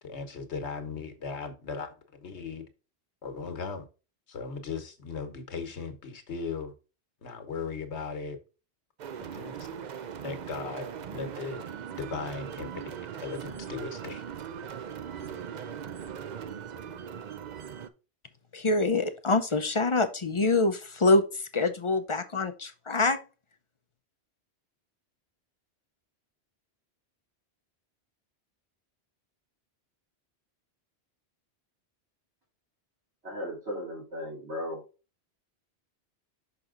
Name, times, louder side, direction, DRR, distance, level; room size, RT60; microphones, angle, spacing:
voice 1, 0.0-2.7 3.2-3.9 4.3-6.7 7.2-8.4 9.2-9.5 10.2-13.0 13.2-14.2 15.2-15.4, left 5 dB, 80° left, 1.4 m, -38 dB
sound 1, 9.0-17.9, right 8 dB, 55° right, 0.6 m, -40 dB
voice 2, 18.5-23.2, left 3 dB, 40° left, 0.5 m, -25 dB
voice 3, 33.2-34.8, left 1 dB, 75° right, 3.1 m, -36 dB
5.9 x 5.3 x 3.7 m
omnidirectional pair, 1.1 m